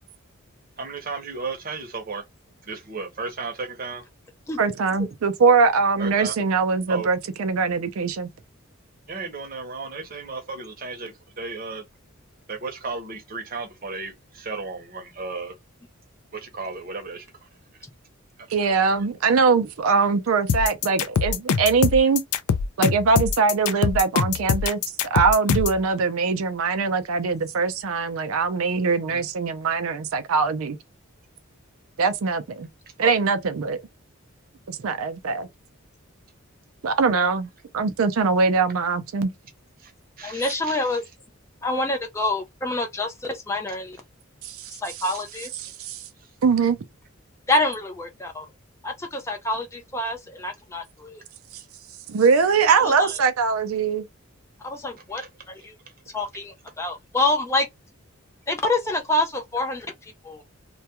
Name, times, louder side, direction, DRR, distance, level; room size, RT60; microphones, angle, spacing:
voice 1, 0.8-2.2 2.7-4.0 6.0-6.3 6.9-7.1 9.1-11.8 12.5-15.5 16.3-17.3 29.1-29.2 33.0-33.1 39.8-39.9 40.2-40.8 55.2-55.3, right 4 dB, 40° right, 0.7 m, -34 dB
voice 2, 4.6-8.3 18.5-22.2 22.8-24.8 25.1-30.8 32.0-32.7 33.0-33.8 34.7-35.5 36.8-39.3 44.4-44.7 45.6-46.0 46.4-46.8 52.1-54.1, right 5 dB, 75° right, 0.4 m, -22 dB
sound 1, 20.5-25.8, left 6 dB, 85° left, 0.4 m, -23 dB
voice 3, 40.2-41.0 41.6-44.0 44.7-45.5 47.5-48.5 48.8-51.2 52.8-53.1 54.6-55.2 55.5-55.7 56.1-57.7 58.5-59.9 60.2-60.4, left 2 dB, 15° left, 0.3 m, -26 dB
2.3 x 2.2 x 2.8 m
head